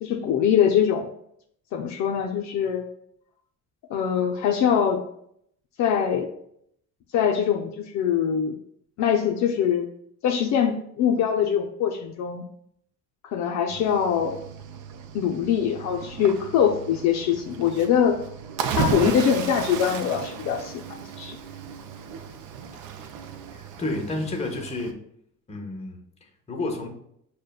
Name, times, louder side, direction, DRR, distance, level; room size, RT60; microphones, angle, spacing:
voice 1, 0.0-1.1 1.7-2.9 3.9-5.0 5.8-6.3 7.1-8.6 9.0-9.9 10.2-12.4 13.3-14.4 15.1-18.2 18.7-21.4, left 8 dB, 60° left, 2 dB, 0.4 m, -23 dB
Cricket / Waves surf, 13.7-24.9, right 6 dB, 70° right, 0.5 m, -34 dB
voice 2, 23.5-25.0 25.5-26.9, left 2 dB, 20° left, 2 dB, 0.7 m, -31 dB
6.4 x 2.2 x 2.2 m, 0.71 s
cardioid pair, 120°, 32 cm